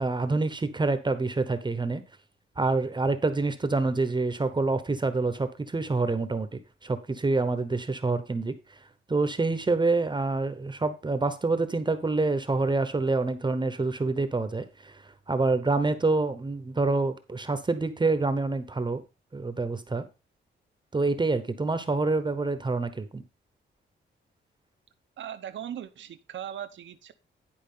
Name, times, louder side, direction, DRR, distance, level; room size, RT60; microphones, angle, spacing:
voice 1, 0.0-2.0 2.6-8.8 9.1-19.0 19.3-20.0 20.9-23.2, right 3 dB, 25° right, 1.0 m, -27 dB
voice 2, 25.2-27.1, right 10 dB, 75° right, 0.9 m, -38 dB
10.5 x 4.7 x 5.6 m
cardioid pair, 110°, 20 cm